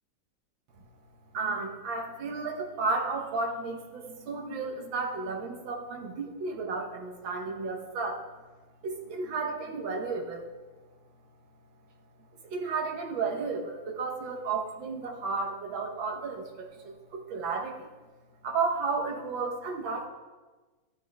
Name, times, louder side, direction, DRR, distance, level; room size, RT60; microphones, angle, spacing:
voice 1, 1.3-8.2 8.8-10.5 12.4-17.9 18.4-20.1, right 4 dB, 80° right, 1 dB, 1.9 m, -33 dB
13.5 x 7.0 x 3.4 m, 1.3 s
omnidirectional pair, 2.1 m